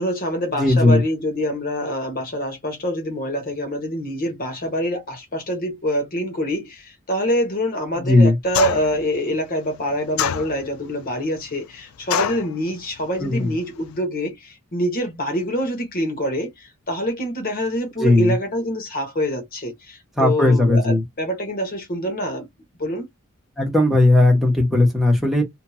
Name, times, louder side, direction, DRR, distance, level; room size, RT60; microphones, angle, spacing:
voice 1, 0.0-22.5 22.8-23.1, equal, 45° left, 1.1 m, -25 dB
voice 2, 0.6-1.0 7.9-8.3 13.2-13.5 18.0-18.3 20.2-21.0 23.6-25.4, left 2 dB, ahead, 1.2 m, -16 dB
sound 1, 8.5-9.0 10.2-10.9 12.1-12.5, left 9 dB, 80° left, 0.3 m, -23 dB
2.8 x 2.7 x 2.3 m
head